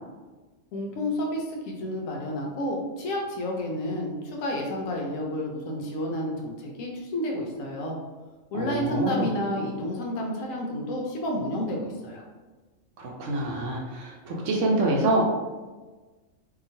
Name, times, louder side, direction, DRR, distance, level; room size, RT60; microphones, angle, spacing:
voice 1, 0.7-8.0 8.5-12.2, left 1 dB, 75° left, -1 dB, 1.0 m, -30 dB
voice 2, 8.5-9.3 13.0-15.2, right 2 dB, 70° right, -1 dB, 0.8 m, -26 dB
2.8 x 2.4 x 2.6 m, 1.3 s
omnidirectional pair, 1.5 m